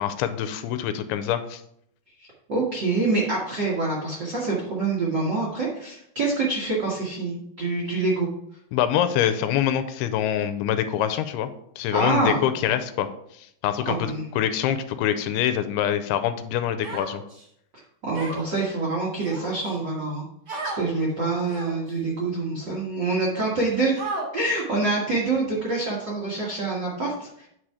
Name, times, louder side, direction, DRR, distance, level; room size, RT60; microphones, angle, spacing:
voice 1, 0.0-1.6 8.7-11.5 11.8-13.1 13.3-17.2, left 10 dB, 85° left, 11 dB, 2.6 m, -25 dB
voice 2, 2.5-8.3 11.9-12.4 13.9-14.2 18.0-20.2 20.7-23.9 24.3-27.5, right 3 dB, 60° right, -4 dB, 1.1 m, -26 dB
Human voice, 16.8-17.4 18.1-18.6 19.2-19.8 20.5-20.8 21.5-21.9 22.6-22.7 24.0-24.6, right 2 dB, 30° right, 2.4 m, -33 dB
8.9 x 4.3 x 4.8 m, 0.73 s
omnidirectional pair, 4.5 m